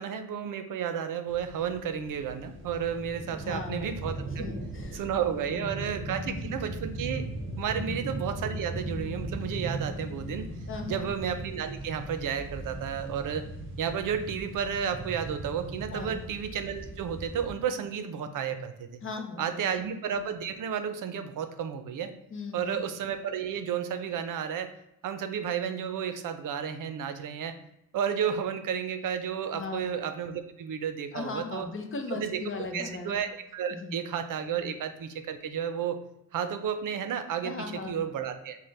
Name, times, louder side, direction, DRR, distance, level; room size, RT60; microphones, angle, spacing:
voice 1, 0.0-4.4 4.9-7.3 7.6-10.5 10.9-13.5 13.8-19.0 19.4-22.1 22.5-24.7 25.0-27.6 27.9-31.7 32.2-36.0 36.3-38.6, right 8 dB, 75° right, 9 dB, 0.5 m, -32 dB
sound 1, 1.3-17.5, right 1 dB, 40° right, 0.7 m, -38 dB
voice 2, 3.3-3.9 4.4-5.7 6.0-6.4 7.7-8.0 10.7-11.1 15.9-16.2 19.0-19.8 22.3-22.8 29.5-29.9 31.1-33.2 33.8-34.0 34.5-34.7 37.4-38.0, left 4 dB, 40° left, 4 dB, 0.6 m, -38 dB
5.5 x 2.1 x 3.2 m, 0.81 s
wide cardioid pair, 140°, 32 cm